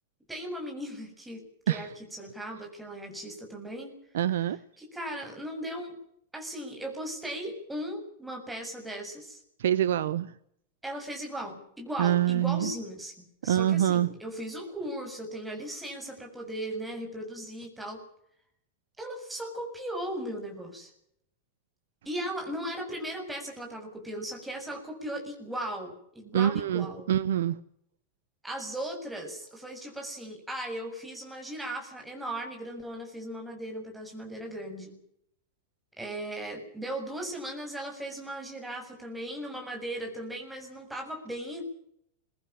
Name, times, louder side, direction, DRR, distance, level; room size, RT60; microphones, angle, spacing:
voice 1, 0.3-3.9 4.8-5.9 6.3-9.4 10.8-18.0 19.0-20.9 22.1-27.1 28.4-34.9 36.0-41.6, right 1 dB, 5° right, 2 dB, 7.2 m, -37 dB
voice 2, 4.1-4.6 9.6-10.3 12.0-12.7 13.4-14.1 26.3-27.6, right 11 dB, 60° right, 16 dB, 0.9 m, -25 dB
23.5 x 18.5 x 7.4 m, 0.71 s
figure-of-eight pair, 90°, 0 cm